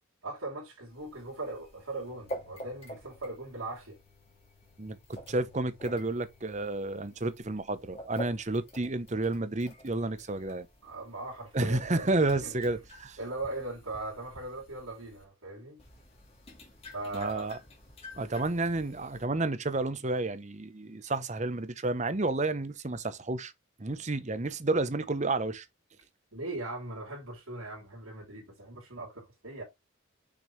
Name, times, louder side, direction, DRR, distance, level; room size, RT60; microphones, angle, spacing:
voice 1, 0.2-4.0 10.8-12.6 13.2-15.8 16.9-17.5 26.3-29.6, right 2 dB, 75° right, 3.3 m, -39 dB
sound 1, 0.9-15.2 15.8-19.3, equal, 25° left, 2.6 m, -49 dB
voice 2, 4.8-10.7 11.5-13.2 17.1-17.6 18.1-23.5 23.8-25.7, right 2 dB, 30° right, 0.8 m, -31 dB
6.4 x 6.0 x 3.2 m
head